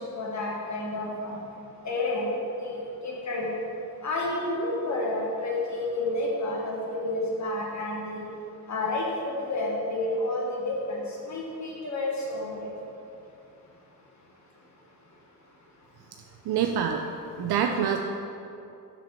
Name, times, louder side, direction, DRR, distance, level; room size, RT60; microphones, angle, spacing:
voice 1, 0.0-1.4 1.8-2.3 2.6-3.5 4.0-8.2 8.7-12.7, left 2 dB, 50° left, -3 dB, 1.4 m, -30 dB
voice 2, 16.5-17.0 17.4-18.0, right 8 dB, 85° right, 4 dB, 0.5 m, -25 dB
6.3 x 5.1 x 6.1 m, 2.7 s
cardioid pair, 105°, 37 cm